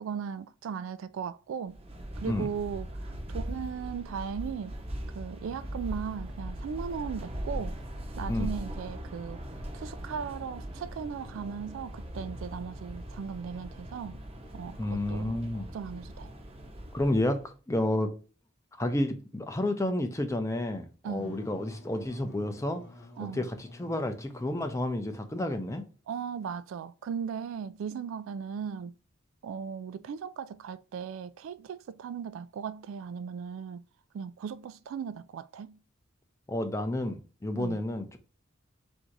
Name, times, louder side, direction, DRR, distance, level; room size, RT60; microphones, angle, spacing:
voice 1, 0.0-1.8 2.2-4.8 5.1-7.8 8.2-9.4 9.7-14.2 14.5-16.3 21.0-21.4 23.2-23.5 26.1-28.9 29.4-33.8 34.1-35.8 37.6-37.8, right 7 dB, 75° right, 0.3 m, -37 dB
sound 1, 1.7-17.4, equal, 30° right, 0.7 m, -40 dB
voice 2, 14.8-15.7 16.9-18.1 18.8-22.8 23.3-23.5 23.8-25.8 36.5-38.2, left 1 dB, 15° left, 0.5 m, -30 dB
Wind instrument woodwind instrument, 21.1-25.7, left 2 dB, 50° left, 0.9 m, -51 dB
3.7 x 2.7 x 4.5 m
head